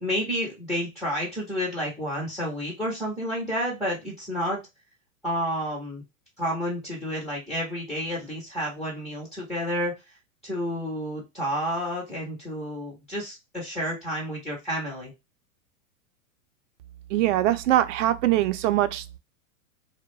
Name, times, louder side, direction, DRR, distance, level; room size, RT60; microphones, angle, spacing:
voice 1, 0.0-4.6 5.2-6.0 6.4-9.9 10.4-15.1, equal, ahead, 0.3 m, -30 dB
voice 2, 17.1-19.2, right 14 dB, 65° right, 0.5 m, -23 dB
2.3 x 2.1 x 3.0 m
hypercardioid pair, 125°, 42 cm